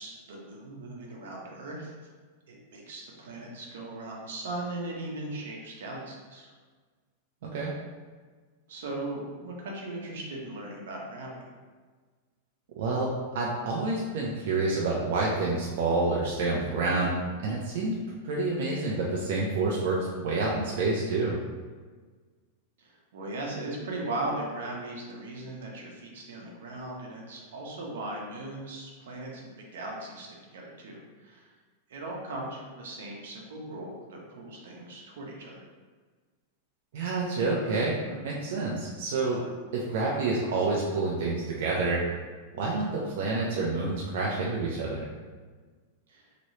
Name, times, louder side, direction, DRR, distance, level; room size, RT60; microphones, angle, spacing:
voice 1, 0.0-1.9 2.5-6.5 8.7-11.3 22.8-30.3 30.5-31.5 31.9-35.6 46.1-46.3, right 2 dB, 85° right, -1 dB, 0.8 m, -38 dB
voice 2, 7.4-7.7 12.8-13.1 13.3-17.2 17.4-18.0 18.2-21.4 36.9-39.4 39.7-42.0 42.5-45.1, right 3 dB, 60° right, -4 dB, 0.5 m, -28 dB
3.0 x 2.7 x 3.1 m, 1.4 s
supercardioid pair, 170°, 0 cm